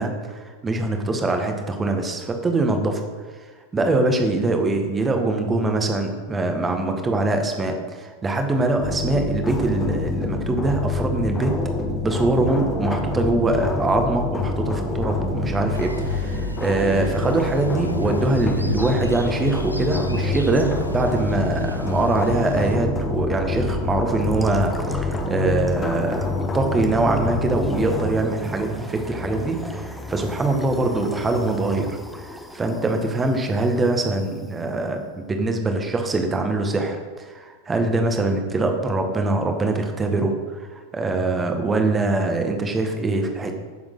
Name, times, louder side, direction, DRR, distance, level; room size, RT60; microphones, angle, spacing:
voice 1, 0.0-3.0 3.7-11.5 12.0-43.5, right 2 dB, 15° right, 4 dB, 1.6 m, -23 dB
sound 1, 8.8-28.1, left 2 dB, 20° left, 1.7 m, -26 dB
sound 2, 15.7-22.8, equal, 90° left, 0.8 m, -36 dB
sound 3, 24.1-34.5, left 1 dB, ahead, 1.0 m, -37 dB
16.0 x 7.1 x 3.9 m, 1.4 s
figure-of-eight pair, 90°, 0 cm